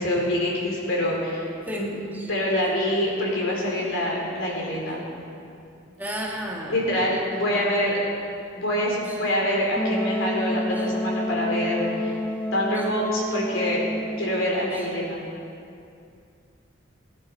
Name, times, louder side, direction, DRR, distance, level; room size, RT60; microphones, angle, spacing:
voice 1, 0.0-1.5 1.7-2.0 2.3-5.0 6.7-8.0 8.5-12.2 12.5-13.9 14.2-15.2, left 1 dB, 80° left, -3 dB, 3.9 m, -25 dB
voice 2, 1.7-2.3 6.0-7.0 9.1-9.2 10.8-10.9 12.8-12.9 14.7-14.9, equal, 10° right, -2 dB, 1.6 m, -34 dB
Wind instrument woodwind instrument, 9.8-14.6, equal, 5° left, 0.4 m, -29 dB
20.0 x 11.0 x 4.7 m, 2.5 s
head